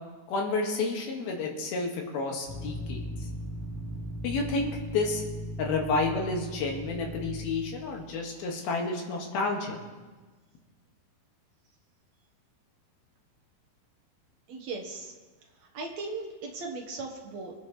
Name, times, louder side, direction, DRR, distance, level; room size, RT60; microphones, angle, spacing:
voice 1, 0.3-3.1 4.2-5.2 5.6-9.8, left 3 dB, 75° left, 0 dB, 3.6 m, -30 dB
sound 1, 2.5-7.8, equal, 55° left, 5.9 m, -38 dB
voice 2, 14.5-15.1 15.7-17.5, right 3 dB, 60° right, 1 dB, 2.1 m, -37 dB
26.0 x 10.0 x 3.2 m, 1.3 s
omnidirectional pair, 4.6 m